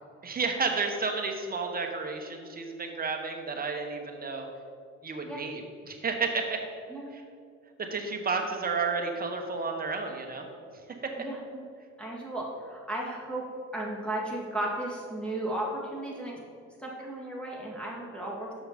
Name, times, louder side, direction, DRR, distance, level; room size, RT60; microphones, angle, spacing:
voice 1, 0.2-4.5 5.0-6.6 7.1-7.2 7.8-10.5 11.0-11.1, right 4 dB, 30° right, 3 dB, 1.1 m, -31 dB
voice 2, 11.2-11.6 12.0-16.4 16.8-18.5, right 1 dB, 5° left, -4 dB, 1.8 m, -35 dB
6.5 x 5.9 x 5.1 m, 2.4 s
cardioid pair, 90°, 30 cm